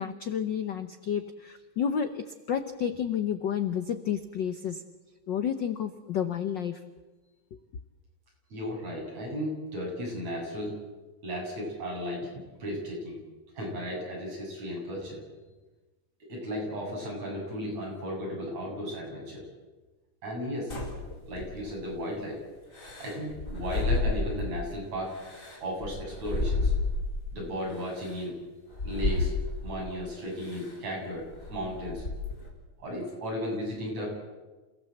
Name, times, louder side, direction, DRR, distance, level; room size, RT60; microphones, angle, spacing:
voice 1, 0.0-4.8 5.3-6.8, left 8 dB, 70° left, 9 dB, 1.0 m, -31 dB
voice 2, 8.5-10.8 11.2-12.3 12.6-13.2 13.5-15.2 16.3-19.5 20.2-20.7 21.2-22.4 23.0-25.2 25.6-26.7 27.3-28.4 28.8-29.3 29.6-32.0 32.8-34.2, equal, 70° right, -2 dB, 9.2 m, -35 dB
sound 1, 20.7-21.9 22.7-24.7 25.1-27.3 28.0-28.1 28.7-29.9 30.4-30.7 31.2-32.5, left 3 dB, 25° left, 4.5 m, -31 dB
28.5 x 17.0 x 7.9 m, 1.2 s
omnidirectional pair, 3.3 m